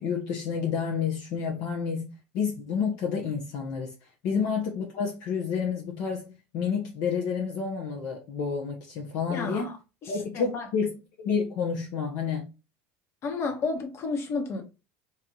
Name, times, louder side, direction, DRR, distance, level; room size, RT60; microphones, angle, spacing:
voice 1, 0.0-2.1 2.3-3.9 4.2-9.7 10.1-12.5, left 6 dB, 65° left, 1.0 m, -29 dB
voice 2, 9.3-9.8 10.0-10.7 13.2-14.6, left 4 dB, 45° left, 1.4 m, -31 dB
3.3 x 2.6 x 4.5 m
supercardioid pair, 105°, 6 cm